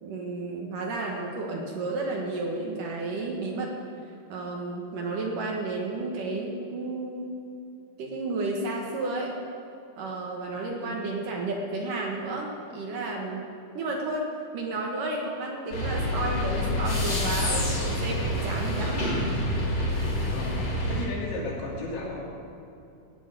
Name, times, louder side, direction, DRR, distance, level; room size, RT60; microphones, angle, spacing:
voice 1, 0.0-3.7 4.3-7.3 8.0-9.3 10.0-13.5 13.7-14.3 14.5-19.1, right 2 dB, 60° right, -1 dB, 2.6 m, -32 dB
voice 2, 10.8-11.2 20.2-22.3, left 2 dB, 85° left, -3 dB, 5.1 m, -35 dB
sound 1, 15.7-21.1, left 1 dB, 30° left, 2.8 m, -27 dB
17.0 x 7.4 x 9.0 m, 2.8 s
omnidirectional pair, 5.0 m